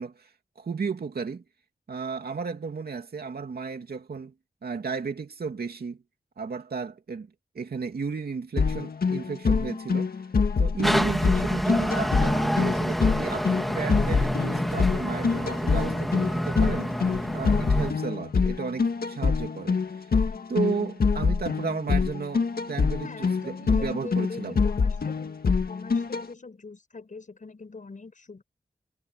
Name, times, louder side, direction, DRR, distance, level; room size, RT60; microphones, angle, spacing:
voice 1, 0.0-1.4 1.9-4.3 4.6-6.0 6.4-7.3 7.5-10.1 10.6-20.1 20.5-24.6, right 5 dB, 85° right, 2.6 m, -33 dB
sound 1, 8.6-26.2, left 5 dB, 80° left, 1.8 m, -25 dB
sound 2, 10.8-17.9, equal, ahead, 2.5 m, -28 dB
voice 2, 23.0-25.3 25.7-28.4, left 4 dB, 55° left, 6.3 m, -44 dB
wide cardioid pair, 110°, 16 cm